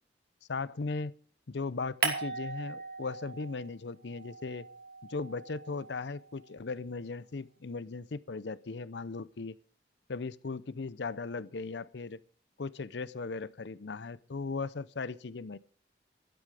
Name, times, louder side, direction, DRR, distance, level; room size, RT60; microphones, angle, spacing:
voice 1, 0.5-1.1 1.5-4.7 5.1-9.6 10.1-12.2 12.6-15.6, left 4 dB, 80° left, 0.6 m, -37 dB
sound 1, 2.0-3.7 4.0-6.4, right 4 dB, 55° right, 2.7 m, -38 dB
12.5 x 11.5 x 4.9 m
head